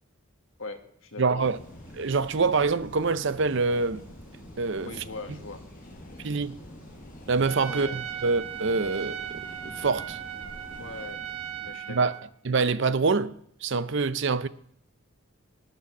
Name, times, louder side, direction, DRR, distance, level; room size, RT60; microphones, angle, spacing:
voice 1, 0.6-1.4 4.8-5.6 7.7-8.1 10.8-11.2 11.6-12.1, left 3 dB, 70° left, 1.6 m, -40 dB
voice 2, 1.2-1.6 1.9-4.0 4.6-4.9 6.2-6.6 7.3-10.2 11.9-12.1 12.4-13.3 13.6-14.5, right 4 dB, 55° right, 0.6 m, -25 dB
sound 1, 1.4-11.8, left 1 dB, 40° left, 1.1 m, -48 dB
sound 2, 1.4-11.1, equal, 10° right, 4.8 m, -50 dB
Trumpet, 7.4-12.3, right 10 dB, 85° right, 1.2 m, -37 dB
19.5 x 6.9 x 6.1 m
head